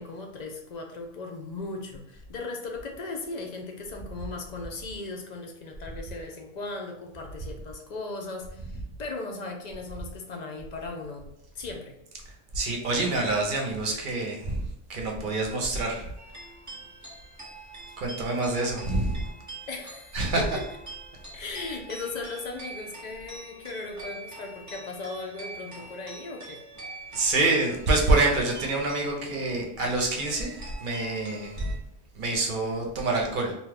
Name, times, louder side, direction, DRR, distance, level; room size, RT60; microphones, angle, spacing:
voice 1, 0.0-11.3 11.5-11.9 19.7-20.5 21.3-26.6, left 3 dB, 55° left, 2 dB, 0.5 m, -37 dB
voice 2, 12.5-16.1 18.0-19.2 20.1-20.4 27.1-31.8 32.1-33.5, right 2 dB, 55° right, 1 dB, 0.8 m, -26 dB
sound 1, 16.2-31.8, right 2 dB, 20° right, 0.6 m, -45 dB
2.7 x 2.3 x 3.3 m, 0.82 s
omnidirectional pair, 1.1 m